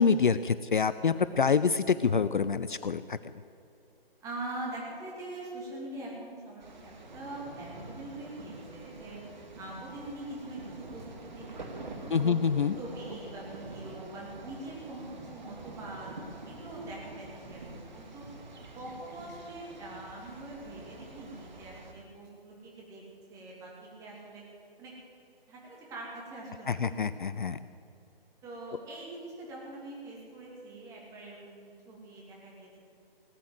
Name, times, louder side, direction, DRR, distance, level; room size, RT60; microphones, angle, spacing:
voice 1, 0.0-3.2 12.1-12.8 26.7-27.6, left 5 dB, 55° left, 14 dB, 0.5 m, -26 dB
voice 2, 4.2-9.2 9.5-11.0 11.3-12.4 12.8-16.1 16.5-18.2 18.7-23.0 23.3-24.4 24.8-24.9 25.5-26.8 27.1-27.2 28.4-32.8, right 2 dB, 10° right, -3 dB, 2.7 m, -43 dB
sound 1, 6.6-21.9, right 2 dB, 50° right, 2.0 m, -46 dB
18.5 x 9.1 x 8.0 m, 2.6 s
figure-of-eight pair, 140°, 30 cm